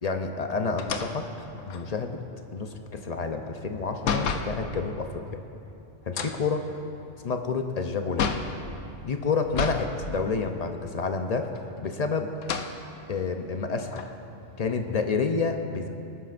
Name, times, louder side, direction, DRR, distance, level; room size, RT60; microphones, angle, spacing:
voice 1, 0.0-2.2 2.5-5.4 6.1-6.6 7.2-8.4 9.0-11.5 11.8-12.3 13.1-14.0 14.6-15.9, left 4 dB, 45° left, 5 dB, 0.5 m, -29 dB
sound 1, 0.8-4.6 6.0-8.6 9.5-9.9 10.3-10.4 11.5-12.0 12.4-12.8 13.4-13.5 13.9-15.3, left 6 dB, 80° left, 1.1 m, -32 dB
20.0 x 12.0 x 2.5 m, 2.8 s
omnidirectional pair, 1.3 m